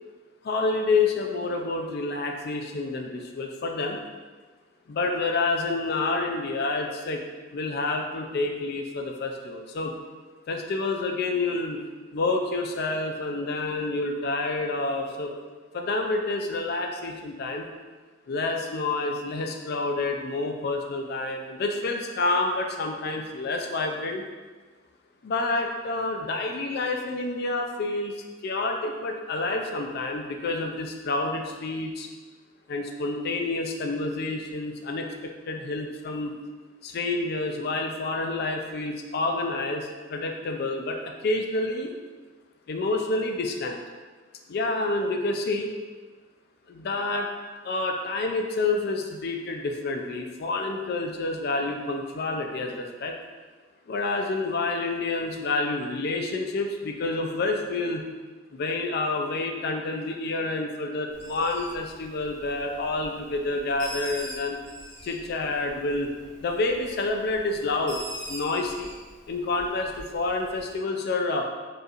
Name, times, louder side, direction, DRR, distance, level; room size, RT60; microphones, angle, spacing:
voice 1, 0.4-4.0 4.9-7.2 7.5-10.0 10.5-11.8 12.1-15.3 15.7-17.7 18.3-24.2 25.2-28.1 28.4-32.1 32.7-36.3 36.8-41.9 42.7-43.8 44.5-45.7 46.7-47.3 47.6-53.1 53.9-58.1 58.5-64.6 65.0-66.1 66.4-68.0 68.3-68.9 69.3-71.5, left 3 dB, 55° left, 3 dB, 0.4 m, -28 dB
Bird, 61.1-70.8, right 1 dB, 65° right, 0.8 m, -44 dB
4.7 x 3.2 x 2.4 m, 1.3 s
head